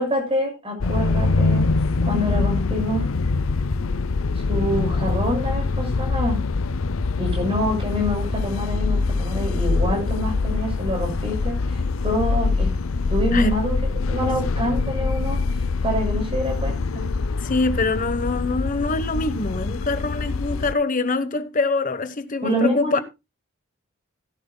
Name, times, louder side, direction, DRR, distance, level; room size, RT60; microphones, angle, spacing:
voice 1, 0.0-1.7 2.0-3.1 4.5-6.4 7.2-12.7 13.1-17.1 22.4-23.0, equal, 30° right, 6.4 m, -26 dB
sound 1, 0.8-20.7, left 3 dB, 85° left, 0.6 m, -24 dB
voice 2, 17.4-23.0, left 3 dB, 40° left, 1.0 m, -24 dB
16.5 x 11.0 x 2.2 m
head